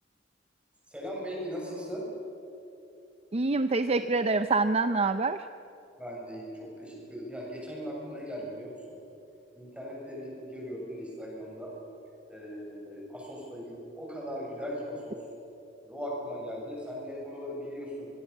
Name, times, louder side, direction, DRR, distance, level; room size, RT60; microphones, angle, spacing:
voice 1, 0.9-2.1 6.0-9.0 9.5-11.7 12.3-15.2 15.8-18.1, equal, 5° right, -3 dB, 7.6 m, -39 dB
voice 2, 3.3-5.4, right 3 dB, 35° right, 10 dB, 0.6 m, -26 dB
24.0 x 23.5 x 7.2 m, 2.8 s
head